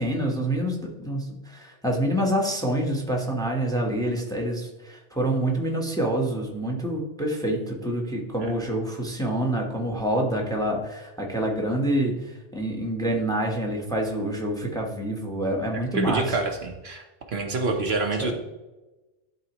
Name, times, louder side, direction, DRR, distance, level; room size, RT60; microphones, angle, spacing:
voice 1, 0.0-16.4 18.2-18.3, right 1 dB, 5° left, 1 dB, 1.1 m, -27 dB
voice 2, 15.9-17.0 17.3-18.3, right 3 dB, 55° right, 2 dB, 1.0 m, -27 dB
12.0 x 4.0 x 3.0 m, 1.1 s
omnidirectional pair, 1.3 m